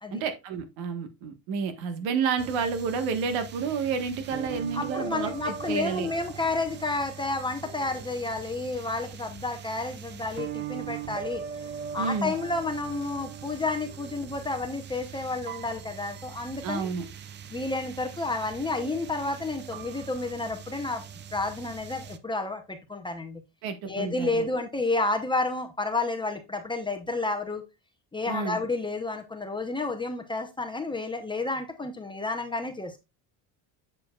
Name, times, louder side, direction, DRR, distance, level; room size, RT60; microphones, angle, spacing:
voice 1, 0.1-6.1 11.9-12.3 16.6-17.1 23.6-24.5 28.3-28.6, right 5 dB, 75° right, 1.5 m, -30 dB
sound 1, 2.4-22.2, right 8 dB, 25° right, 0.4 m, -41 dB
voice 2, 4.7-16.9 17.5-21.0 21.3-23.4 23.8-27.6 28.1-33.0, left 3 dB, 10° left, 0.8 m, -31 dB
7.6 x 6.7 x 2.3 m
cardioid pair, 155°, 46 cm